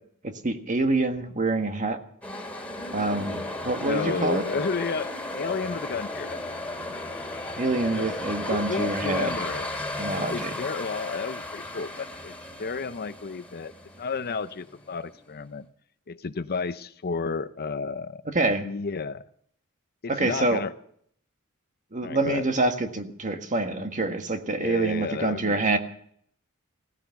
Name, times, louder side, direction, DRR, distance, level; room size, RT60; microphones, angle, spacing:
voice 1, 0.2-2.0 2.9-4.4 7.6-9.3 10.0-10.5 18.3-18.7 20.1-20.6 21.9-25.8, right 2 dB, 35° right, 6 dB, 1.6 m, -26 dB
sound 1, 2.2-15.1, left 1 dB, 5° left, 2.6 m, -35 dB
voice 2, 3.8-6.4 8.0-8.1 8.5-9.7 10.1-15.7 16.1-18.2 18.6-19.2 20.0-20.7 22.0-22.5 24.6-25.6, left 4 dB, 45° left, 12 dB, 0.6 m, -32 dB
17.5 x 14.0 x 5.9 m, 0.65 s
head